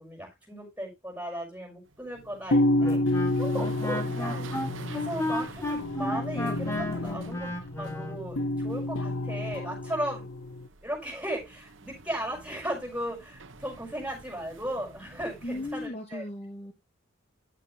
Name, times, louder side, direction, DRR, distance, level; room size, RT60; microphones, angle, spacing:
voice 1, 0.0-10.3 10.8-16.2, right 1 dB, 5° right, 5.7 m, -36 dB
sound 1, 1.9-15.9, right 3 dB, 70° right, 1.1 m, -48 dB
sound 2, 2.5-10.7, left 1 dB, 85° left, 0.8 m, -29 dB
Wind instrument woodwind instrument, 2.8-8.2, left 1 dB, 15° left, 1.5 m, -33 dB
voice 2, 15.4-16.7, left 1 dB, 30° left, 1.2 m, -36 dB
10.5 x 8.3 x 3.3 m
head